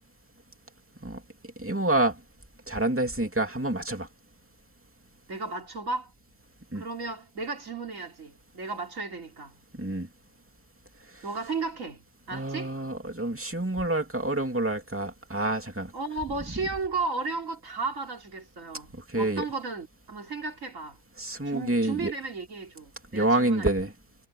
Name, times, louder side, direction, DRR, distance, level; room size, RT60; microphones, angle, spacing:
voice 1, 1.6-2.2 2.7-4.1 6.7-6.8 9.7-10.1 12.3-15.9 18.9-19.4 21.2-22.1 23.1-23.9, right 2 dB, 10° right, 2.6 m, -27 dB
voice 2, 5.3-6.1 6.7-9.5 11.2-12.0 12.3-12.7 15.9-18.9 19.2-21.0 21.5-23.7, right 4 dB, 55° right, 3.9 m, -34 dB
omnidirectional pair, 1.7 m